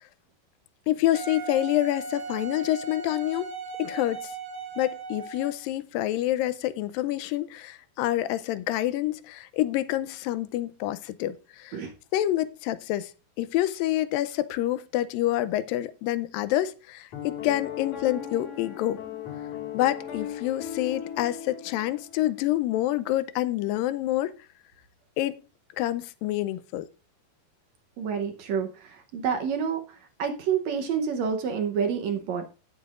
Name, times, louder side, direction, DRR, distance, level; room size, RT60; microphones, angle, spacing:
voice 1, 0.9-3.5 3.8-4.3 4.8-11.8 12.1-13.1 13.4-19.0 19.7-24.3 25.2-25.4 25.8-26.9, left 14 dB, 85° left, 2.4 m, -27 dB
Wind instrument woodwind instrument, 1.1-5.7, right 5 dB, 85° right, 0.9 m, -37 dB
Piano, 17.1-22.4, left 9 dB, 60° left, 3.4 m, -37 dB
voice 2, 28.0-29.8 30.2-32.5, right 7 dB, 65° right, 1.9 m, -28 dB
16.5 x 7.0 x 2.5 m
omnidirectional pair, 3.9 m